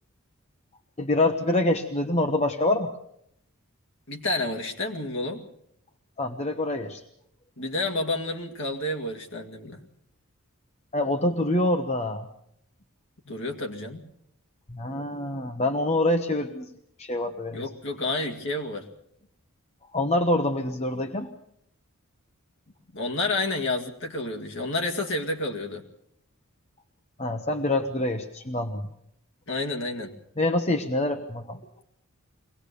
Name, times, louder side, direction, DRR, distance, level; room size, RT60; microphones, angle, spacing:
voice 1, 1.0-2.9 6.2-7.0 10.9-12.3 14.7-16.7 17.0-17.6 19.9-21.3 27.2-28.9 30.4-31.6, left 1 dB, 30° left, 6 dB, 1.0 m, -26 dB
voice 2, 4.1-5.4 7.6-9.8 13.3-14.0 17.5-18.9 22.9-25.8 29.5-30.1, left 2 dB, 60° left, 2 dB, 2.1 m, -30 dB
23.5 x 18.5 x 6.8 m, 0.71 s
head